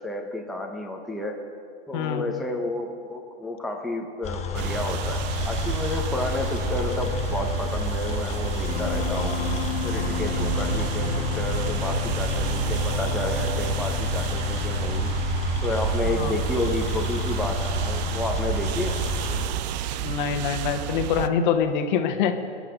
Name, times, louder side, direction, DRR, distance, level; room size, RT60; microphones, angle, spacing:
voice 1, 0.0-1.4 1.9-9.4 9.8-15.2 15.6-19.0, left 2 dB, ahead, 0 dB, 1.2 m, -31 dB
voice 2, 1.9-2.4 16.0-16.3 20.0-22.3, left 7 dB, 45° left, 7 dB, 1.5 m, -25 dB
sound 1, 4.2-19.5, left 6 dB, 20° left, 1.2 m, -31 dB
sound 2, 4.5-21.3, right 11 dB, 40° right, 0.7 m, -30 dB
sound 3, 8.7-15.7, left 9 dB, 70° left, 1.2 m, -33 dB
23.5 x 10.0 x 5.3 m, 2.3 s
hypercardioid pair, 115°, 34 cm